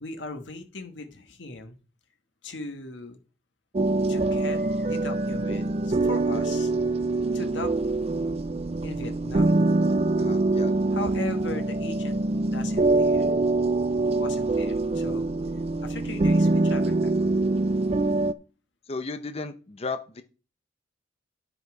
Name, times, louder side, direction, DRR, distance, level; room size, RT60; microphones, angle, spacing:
voice 1, 0.0-1.7 2.4-3.2 4.1-6.7 7.3-7.7 8.8-9.6 10.9-12.2 12.5-13.3 14.1-15.3 15.8-17.1, left 2 dB, 80° left, 7 dB, 1.4 m, -38 dB
sound 1, 3.7-18.3, right 2 dB, 35° right, 0.5 m, -24 dB
voice 2, 10.2-10.7 18.9-20.2, left 3 dB, 35° left, 9 dB, 0.8 m, -34 dB
9.8 x 6.8 x 4.8 m, 0.35 s
head